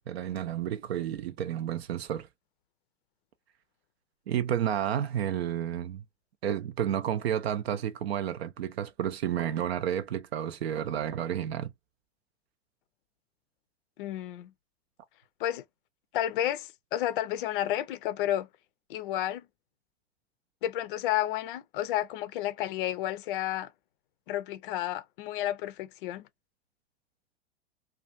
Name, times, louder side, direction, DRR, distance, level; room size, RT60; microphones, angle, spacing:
voice 1, 0.0-2.3 4.3-6.0 6.4-11.7, right 10 dB, 60° right, 0.4 m, -31 dB
voice 2, 14.0-14.5 15.4-15.6 16.1-18.5 18.9-19.4 20.6-23.7 24.3-26.3, left 13 dB, 50° left, 0.4 m, -31 dB
2.4 x 2.2 x 2.4 m
figure-of-eight pair, 90°, 35 cm